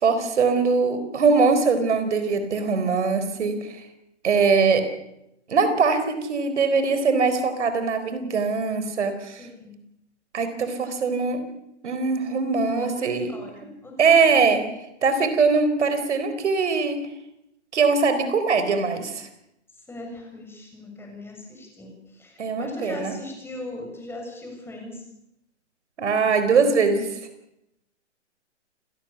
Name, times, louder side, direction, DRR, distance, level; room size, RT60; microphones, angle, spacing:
voice 1, 0.0-3.8 4.2-4.8 5.5-9.4 10.3-11.5 11.8-13.3 14.0-14.6 15.0-17.0 17.7-19.3 22.4-23.1 26.0-27.2, right 4 dB, 70° right, 9 dB, 4.3 m, -22 dB
voice 2, 9.4-9.7 12.8-14.7 19.7-25.0, left 2 dB, 5° left, 1 dB, 7.5 m, -39 dB
29.0 x 18.0 x 7.1 m, 0.84 s
hypercardioid pair, 130°, 35 cm